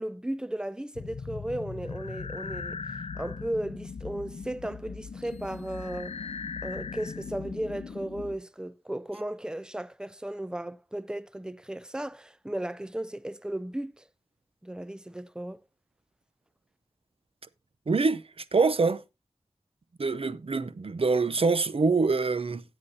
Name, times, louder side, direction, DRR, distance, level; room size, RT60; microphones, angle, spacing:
voice 1, 0.0-2.8 3.2-6.2 6.6-14.0 14.6-15.6, right 1 dB, 5° right, 0.5 m, -35 dB
sound 1, 0.9-8.4, left 5 dB, 80° left, 0.5 m, -39 dB
sound 2, 5.2-7.2, left 4 dB, 50° left, 2.8 m, -62 dB
voice 2, 17.9-19.0 20.0-22.6, right 4 dB, 65° right, 0.7 m, -25 dB
15.5 x 8.1 x 2.8 m
wide cardioid pair, 70°, 10 cm